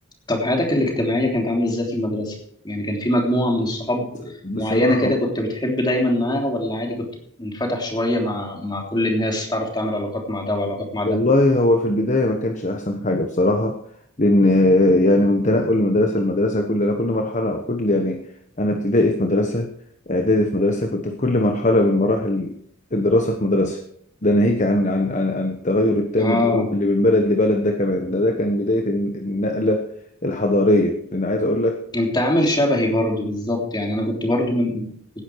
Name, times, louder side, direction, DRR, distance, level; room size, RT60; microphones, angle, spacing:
voice 1, 0.3-2.3 2.6-7.1 7.4-11.2 26.2-26.7 31.9-34.9, left 1 dB, 20° left, 1 dB, 3.3 m, -23 dB
voice 2, 4.4-5.1 11.0-13.8 14.2-18.2 18.6-19.7 20.1-22.6 22.9-23.8 24.2-29.9 30.2-31.8, left 1 dB, 35° left, 5 dB, 1.1 m, -20 dB
17.0 x 10.5 x 4.7 m, 0.66 s
head